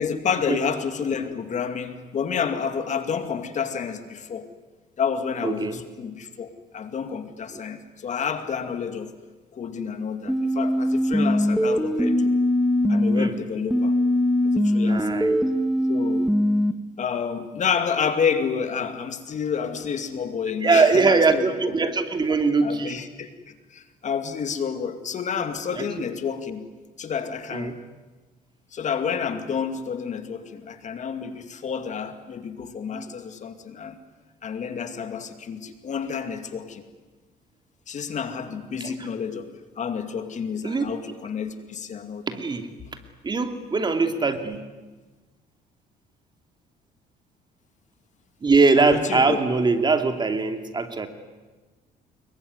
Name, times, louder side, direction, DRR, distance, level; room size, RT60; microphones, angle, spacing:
voice 1, 0.0-4.5 5.0-9.1 9.5-12.3 12.9-14.0 14.5-15.2 15.9-16.3 17.0-21.7 22.6-23.3 23.7-26.7 27.0-27.8 28.7-34.0 34.4-36.8 37.9-42.2 48.8-49.4, left 6 dB, 45° left, 8 dB, 2.4 m, -29 dB
voice 2, 5.4-5.8 7.5-7.6 13.1-13.3 14.8-15.4 20.6-23.0 25.7-25.8 27.5-27.8 32.9-33.1 38.8-39.1 40.6-40.9 42.3-42.7 43.2-44.6 48.4-51.1, right 4 dB, 25° right, 7 dB, 2.6 m, -22 dB
sound 1, 10.3-13.3 13.7-16.7, left 1 dB, ahead, 1.8 m, -21 dB
25.5 x 22.5 x 9.7 m, 1.2 s
cardioid pair, 110°, 17 cm